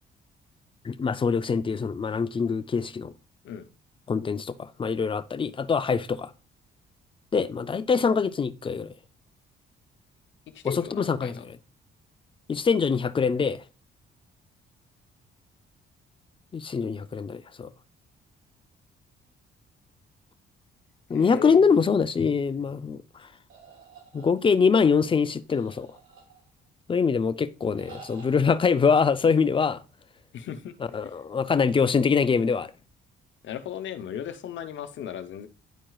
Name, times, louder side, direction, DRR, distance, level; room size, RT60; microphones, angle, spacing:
voice 1, 0.8-3.1 4.1-6.3 7.3-8.9 10.6-11.6 12.5-13.6 16.5-17.7 21.1-23.0 24.1-25.9 26.9-29.8 30.9-32.7, left 5 dB, 25° left, 0.5 m, -24 dB
voice 2, 10.5-11.4 21.1-21.8 30.3-30.7 31.0-31.1 33.4-35.5, left 9 dB, 70° left, 0.8 m, -37 dB
sound 1, 23.5-24.8 25.5-26.7 27.7-28.5, right 5 dB, 80° right, 2.6 m, -50 dB
10.0 x 4.5 x 2.3 m
cardioid pair, 90°, 20 cm